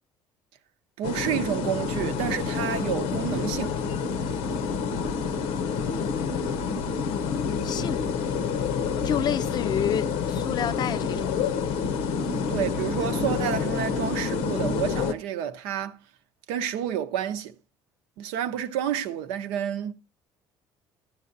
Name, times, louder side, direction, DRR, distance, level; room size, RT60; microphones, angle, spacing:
sound 1, 1.0-15.1, left 5 dB, 85° left, 0.7 m, -28 dB
voice 1, 1.0-3.8 12.5-16.0 16.5-17.5 18.2-19.9, right 9 dB, 85° right, 0.7 m, -29 dB
voice 2, 7.1-8.0 9.0-11.3, left 9 dB, 50° left, 0.4 m, -29 dB
13.0 x 8.9 x 2.6 m
supercardioid pair, 90°, 10 cm